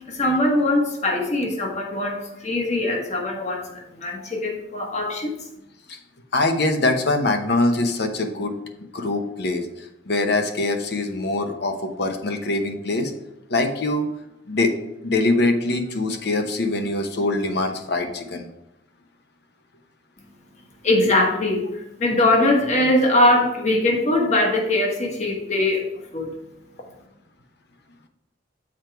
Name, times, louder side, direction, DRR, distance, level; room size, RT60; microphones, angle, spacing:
voice 1, 0.1-5.5 20.8-26.4, left 1 dB, 40° left, 1 dB, 1.3 m, -21 dB
voice 2, 6.3-8.5 8.9-9.7 10.1-13.1 13.5-14.1 14.5-14.7 15.0-18.4, left 2 dB, 60° left, 6 dB, 0.9 m, -23 dB
7.3 x 4.5 x 4.6 m, 0.87 s
head